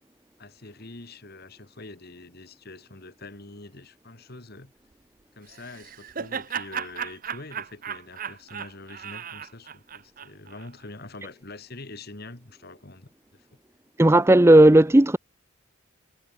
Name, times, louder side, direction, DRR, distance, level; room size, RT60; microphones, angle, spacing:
voice 1, 0.4-4.7 5.3-13.6, left 2 dB, 50° left, 2.1 m, -44 dB
Laughter, 5.5-10.7, right 7 dB, 40° right, 0.8 m, -36 dB
voice 2, 14.0-15.2, right 1 dB, 10° right, 0.5 m, -14 dB
head